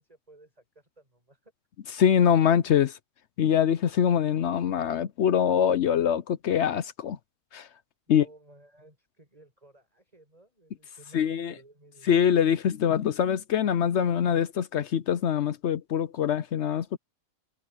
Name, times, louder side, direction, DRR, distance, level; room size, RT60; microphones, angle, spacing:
voice 1, 0.0-1.5 8.1-12.4, right 2 dB, 30° right, 5.7 m, -55 dB
voice 2, 2.0-3.0 3.4-7.2 7.5-7.7 8.1-8.2 11.1-11.5 12.1-17.0, left 8 dB, 65° left, 0.9 m, -24 dB
omnidirectional pair, 1.4 m